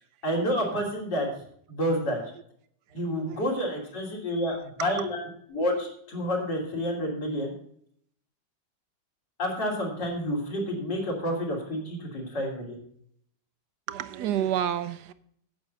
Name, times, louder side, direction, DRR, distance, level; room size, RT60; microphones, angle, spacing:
voice 1, 0.2-1.3 1.7-2.2 2.9-5.2 5.5-7.5 9.4-12.8, equal, 75° left, 3.6 m, -29 dB
voice 2, 2.9-3.4 4.8-5.1 13.9-15.1, right 10 dB, 70° right, 1.2 m, -30 dB
9.1 x 8.0 x 5.3 m
omnidirectional pair, 1.9 m